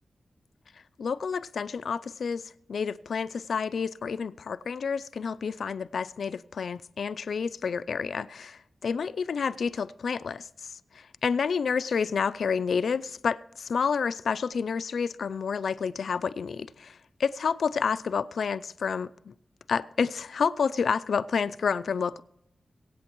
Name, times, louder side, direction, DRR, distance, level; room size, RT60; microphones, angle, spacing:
voice 1, 1.0-19.3 19.7-22.2, left 6 dB, 80° left, 0.4 m, -29 dB
23.0 x 8.5 x 3.0 m
wide cardioid pair, 110°, 0 cm